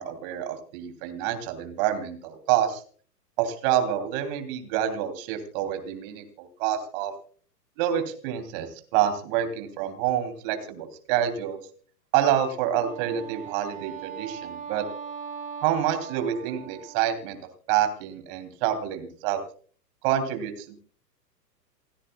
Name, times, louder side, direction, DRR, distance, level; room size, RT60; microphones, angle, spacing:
voice 1, 0.0-2.8 3.4-7.1 7.8-11.6 12.1-14.8 15.6-17.4 17.7-19.4 20.0-20.7, right 10 dB, 35° right, 7 dB, 3.1 m, -27 dB
Wind instrument woodwind instrument, 12.6-17.3, right 7 dB, 15° right, 3.7 m, -39 dB
29.0 x 9.9 x 2.3 m, 0.43 s
figure-of-eight pair, 110°, 50 cm